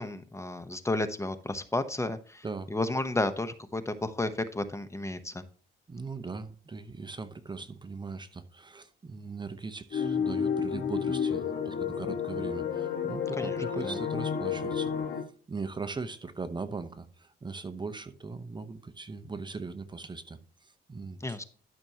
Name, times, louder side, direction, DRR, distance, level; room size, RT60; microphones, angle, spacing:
voice 1, 0.0-2.4 2.7-5.4 13.3-14.0 21.2-21.4, left 2 dB, 15° left, 0.8 m, -32 dB
voice 2, 5.9-14.9 15.5-21.4, right 4 dB, 25° right, 0.8 m, -39 dB
sound 1, 9.9-15.2, left 7 dB, 60° left, 1.5 m, -31 dB
12.5 x 6.1 x 2.8 m
cardioid pair, 90°, 20 cm